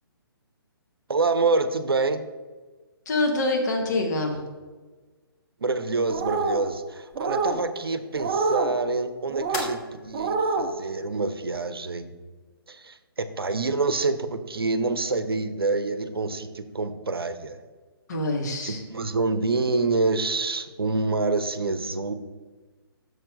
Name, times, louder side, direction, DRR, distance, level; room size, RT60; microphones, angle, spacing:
voice 1, 1.1-2.2 5.6-12.1 12.7-17.6 18.6-22.1, right 3 dB, 70° right, 10 dB, 0.7 m, -27 dB
voice 2, 3.0-4.4 18.1-18.8, left 2 dB, 45° left, 2 dB, 1.5 m, -25 dB
sound 1, 6.0-13.0, left 2 dB, 20° left, 1.2 m, -44 dB
sound 2, 6.1-6.6 7.1-7.6 8.2-8.7 9.3-9.7 10.1-10.7, right 4 dB, 25° right, 0.5 m, -26 dB
6.5 x 4.4 x 6.3 m, 1.3 s
figure-of-eight pair, 135°, 13 cm